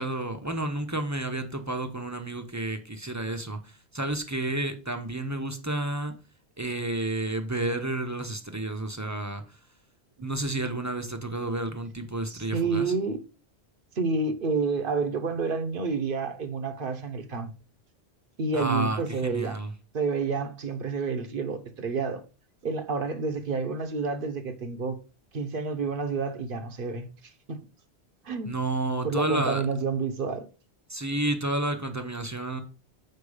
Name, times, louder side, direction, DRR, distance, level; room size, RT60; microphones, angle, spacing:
voice 1, 0.0-6.1 6.6-9.4 10.2-12.9 18.5-19.7 28.5-29.6 30.9-32.6, right 2 dB, 15° right, 0.8 m, -30 dB
voice 2, 12.3-13.2 13.9-17.5 18.4-19.6 19.9-22.2 22.6-25.0 25.3-27.1 27.5-27.6 28.2-28.5 29.0-30.5, right 4 dB, 55° right, 1.1 m, -29 dB
6.7 x 4.6 x 4.9 m
omnidirectional pair, 1.1 m